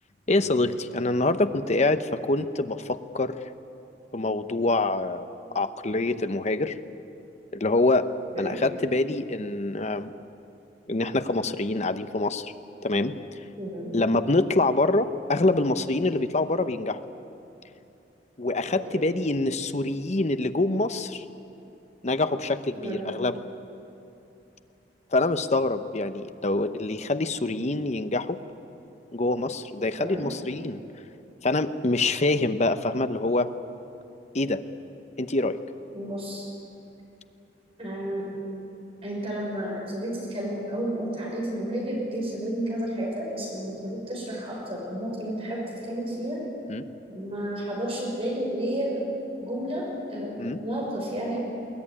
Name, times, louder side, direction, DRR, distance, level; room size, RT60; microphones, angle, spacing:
voice 1, 0.3-3.4 4.1-5.3 5.5-6.8 7.5-8.1 8.4-10.1 10.9-12.5 12.8-13.1 13.9-17.0 18.4-21.2 22.0-23.4 25.1-28.4 29.1-30.8 31.4-33.5 34.3-34.6 35.2-35.6 46.7-46.9 50.4-50.6, left 2 dB, 40° left, 10 dB, 0.9 m, -25 dB
voice 2, 13.6-13.9 18.7-19.1 22.8-23.1 30.0-30.3 35.9-36.5 37.8-38.4 39.0-46.4 47.1-49.1 49.4-51.4, right 1 dB, 35° right, -2 dB, 6.2 m, -31 dB
21.5 x 19.5 x 9.8 m, 2.8 s
head